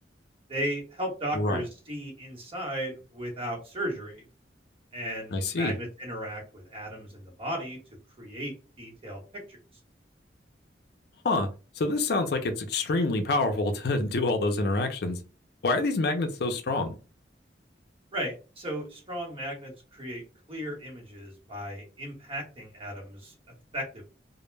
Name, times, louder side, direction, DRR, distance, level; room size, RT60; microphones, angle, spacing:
voice 1, 0.5-4.2 4.9-7.8 8.2-9.2 9.5-9.6 18.1-20.2 20.5-23.3 23.7-24.0, equal, 30° right, 1.0 m, -35 dB
voice 2, 5.3-5.7 11.2-11.5 11.8-15.2 15.6-17.0, left 2 dB, 65° left, 0.5 m, -26 dB
2.1 x 2.1 x 3.2 m
head